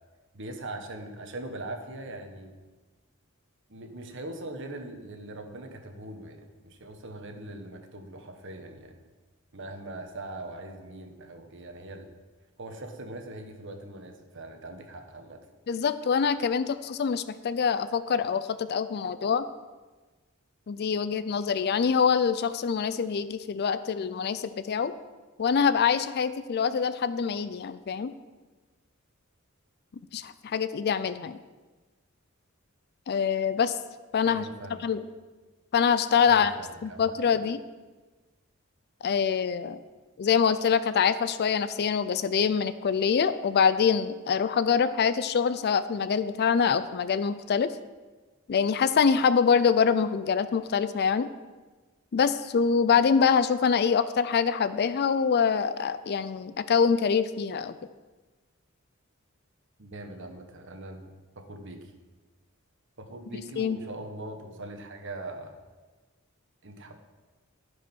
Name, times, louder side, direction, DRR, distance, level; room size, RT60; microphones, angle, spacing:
voice 1, 0.3-2.6 3.7-9.0 9.5-12.1 12.6-15.4 34.2-34.9 36.2-37.4 59.8-61.9 63.0-65.6 66.6-67.0, right 2 dB, 60° right, 5 dB, 1.3 m, -41 dB
voice 2, 15.7-19.4 20.7-24.9 25.4-28.1 30.1-31.4 33.1-33.7 34.1-34.5 34.8-35.0 35.7-36.5 36.8-37.6 39.0-39.8 40.2-47.7 48.5-51.3 52.1-57.7 63.6-63.8, left 6 dB, 50° left, 13 dB, 0.4 m, -25 dB
15.0 x 5.1 x 5.4 m, 1.3 s
head